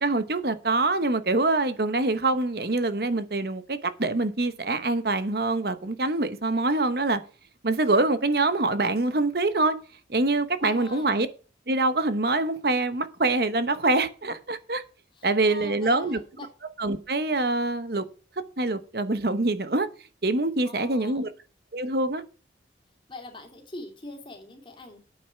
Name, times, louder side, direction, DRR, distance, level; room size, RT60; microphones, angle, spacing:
voice 1, 0.0-7.2 7.6-9.8 10.1-11.3 11.7-14.8 15.2-16.2 16.8-18.0 18.6-19.9 20.2-21.3 21.7-22.2, right 2 dB, 55° right, 1.0 m, -25 dB
voice 2, 10.6-11.1 15.1-16.5 20.6-21.3 23.1-25.0, left 2 dB, 25° left, 2.7 m, -42 dB
8.9 x 8.5 x 5.8 m
head